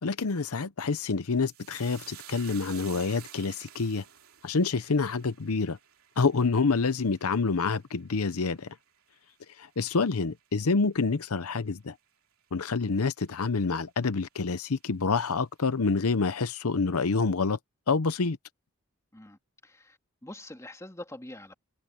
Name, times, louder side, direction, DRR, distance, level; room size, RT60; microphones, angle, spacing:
voice 1, 0.0-4.0 4.4-5.8 6.2-8.7 9.6-11.9 12.5-17.6 17.9-18.4, left 4 dB, 75° left, 0.8 m, -27 dB
sound 1, 1.5-10.1 10.4-11.1 11.3-11.6, right 11 dB, 70° right, 3.2 m, -51 dB
voice 2, 19.1-21.5, left 1 dB, 15° left, 2.0 m, -45 dB
head